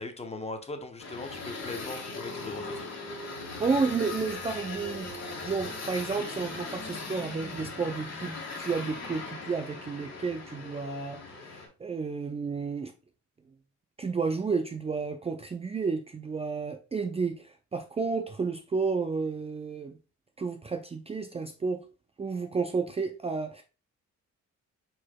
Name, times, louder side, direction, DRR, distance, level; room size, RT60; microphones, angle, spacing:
voice 1, 0.0-2.9, left 2 dB, 20° left, 0.7 m, -39 dB
sound 1, 1.0-11.7, left 3 dB, 60° left, 1.6 m, -39 dB
voice 2, 3.6-12.9 14.0-20.0 20.4-21.8 22.2-23.6, right 4 dB, 20° right, 0.4 m, -31 dB
4.6 x 4.2 x 2.2 m
cardioid pair, 90°, 30 cm